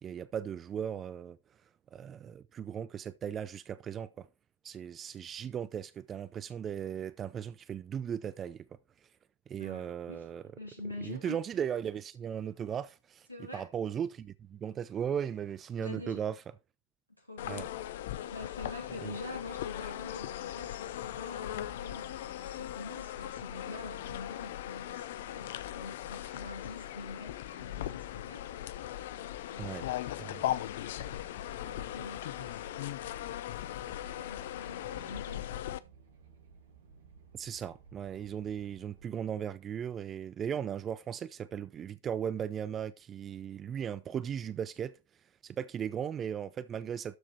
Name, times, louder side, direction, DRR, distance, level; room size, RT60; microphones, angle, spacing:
voice 1, 0.0-1.4 1.9-4.3 4.6-8.7 9.0-9.1 9.5-10.4 11.0-13.3 13.5-16.4 17.5-17.7 19.0-19.2 29.6-29.9 30.2-30.4 37.3-44.9 45.4-47.2, right 8 dB, 25° right, 0.4 m, -37 dB
voice 2, 9.6-10.2 10.6-11.4 13.3-13.6 15.8-16.2 17.2-17.6 18.3-28.5 29.1-30.1 30.8-35.7, left 2 dB, 90° right, 3.5 m, -46 dB
sound 1, 17.4-35.8, left 12 dB, 55° left, 0.6 m, -39 dB
sound 2, 30.2-39.0, right 5 dB, 60° right, 2.2 m, -57 dB
12.5 x 5.0 x 4.4 m
figure-of-eight pair, 90°, 0 cm